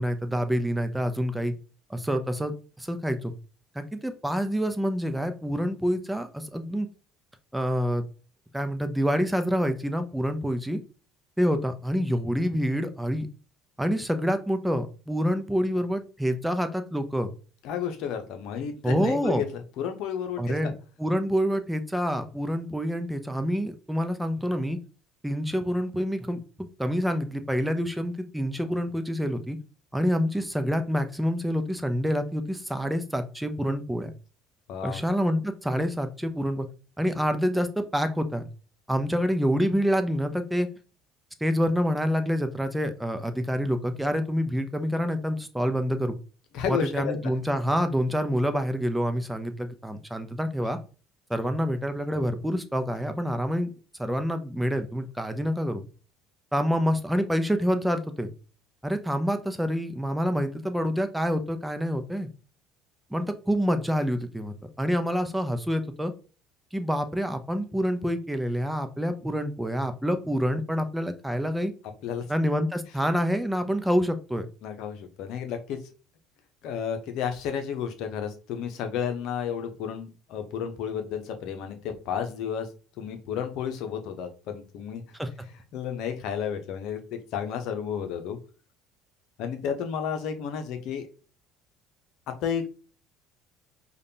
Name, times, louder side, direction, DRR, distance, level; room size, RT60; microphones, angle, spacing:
voice 1, 0.0-1.5 1.9-3.3 3.7-6.9 7.5-8.0 8.5-10.8 11.4-13.3 13.8-17.3 18.8-19.4 20.4-20.7 21.0-24.8 25.2-26.4 26.8-29.6 29.9-34.1 34.8-36.7 37.0-38.5 38.9-40.7 41.4-46.2 46.7-50.8 51.3-53.7 54.0-55.8 56.5-58.3 58.8-62.3 63.1-66.1 66.7-71.7 72.3-74.5 85.2-85.3, equal, 5° right, 8 dB, 0.8 m, -27 dB
voice 2, 17.6-20.7 34.7-35.0 46.5-47.3 52.1-52.2 72.0-72.2 74.6-75.8 76.6-82.7 83.0-85.2 85.7-88.4 89.4-91.1 92.4-92.7, left 7 dB, 65° left, 6 dB, 0.9 m, -32 dB
5.0 x 2.5 x 2.8 m, 0.35 s
hypercardioid pair, 65°, 0 cm